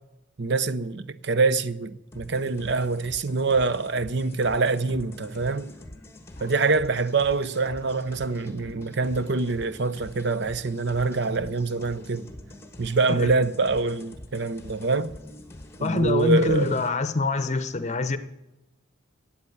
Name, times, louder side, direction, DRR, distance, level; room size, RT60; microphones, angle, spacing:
voice 1, 0.4-5.7 6.4-12.3 12.8-15.1 15.8-16.8, right 3 dB, 55° right, 0.7 m, -25 dB
sound 1, 2.1-16.9, left 1 dB, 15° left, 1.4 m, -45 dB
voice 2, 15.8-18.2, left 3 dB, 35° left, 0.8 m, -25 dB
14.5 x 8.8 x 8.6 m
head